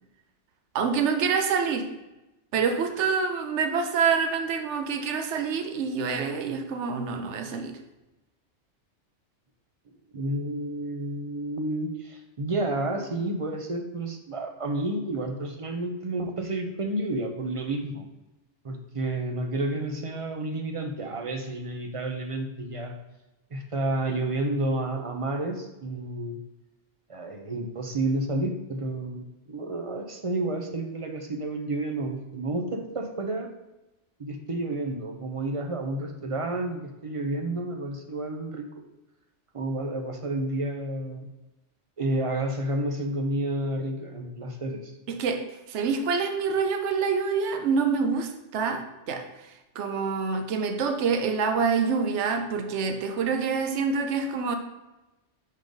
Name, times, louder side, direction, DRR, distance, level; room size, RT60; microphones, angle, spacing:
voice 1, 0.7-1.9 2.5-7.8 45.1-49.3 49.7-54.6, right 5 dB, 75° right, 6 dB, 1.0 m, -26 dB
voice 2, 10.1-18.0 18.6-22.9 23.5-26.4 27.1-33.5 34.2-38.7 39.5-41.2 42.0-44.9, right 2 dB, 35° right, 4 dB, 0.6 m, -30 dB
5.3 x 3.8 x 5.1 m, 1.0 s
omnidirectional pair, 1.2 m